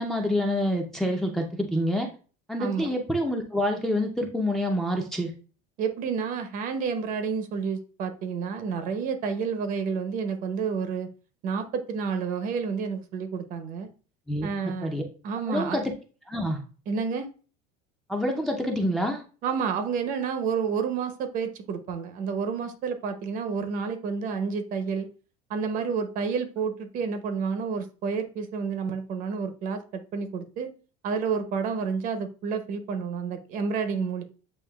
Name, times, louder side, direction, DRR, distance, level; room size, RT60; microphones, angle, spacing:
voice 1, 0.0-2.1 2.5-5.3 14.3-14.5 14.8-15.0 15.5-15.8 16.3-16.6 18.1-19.2, equal, ahead, 1 dB, 0.5 m, -27 dB
voice 2, 2.6-2.9 5.8-11.1 11.4-13.9 14.4-14.9 15.2-15.8 16.9-17.3 19.4-25.1 25.5-30.7 31.0-34.2, right 5 dB, 45° right, 9 dB, 0.8 m, -30 dB
8.4 x 2.8 x 2.2 m, 0.37 s
cardioid pair, 155°, 19 cm